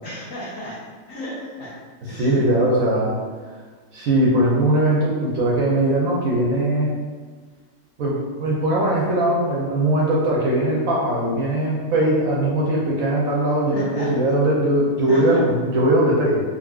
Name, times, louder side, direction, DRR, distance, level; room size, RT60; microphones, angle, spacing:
voice 1, 0.0-0.8 1.1-1.7 2.1-2.5 13.7-14.1 15.1-15.4, equal, 60° left, -7 dB, 1.1 m, -33 dB
voice 2, 2.1-3.1 3.9-6.9 8.0-16.4, right 1 dB, 70° right, -4 dB, 0.9 m, -20 dB
3.7 x 2.5 x 2.3 m, 1.5 s
omnidirectional pair, 1.7 m